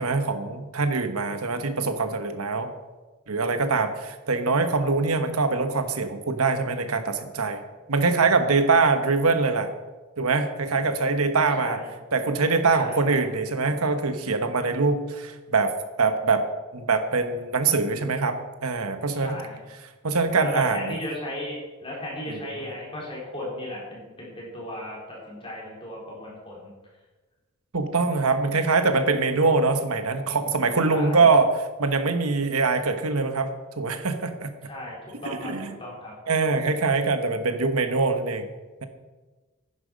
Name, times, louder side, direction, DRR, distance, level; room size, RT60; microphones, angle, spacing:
voice 1, 0.0-2.7 3.3-7.6 7.9-9.7 10.2-11.8 12.1-15.7 16.0-16.4 16.7-19.4 20.0-21.0 22.3-22.7 27.7-34.5 35.2-35.7 36.3-38.5, right 4 dB, 85° right, 8 dB, 1.2 m, -23 dB
voice 2, 11.6-11.9 12.8-13.1 19.2-19.6 20.3-26.7 30.9-31.3 34.6-35.0 35.2-36.1, left 1 dB, 25° left, -4 dB, 3.9 m, -35 dB
11.0 x 10.0 x 5.2 m, 1.3 s
head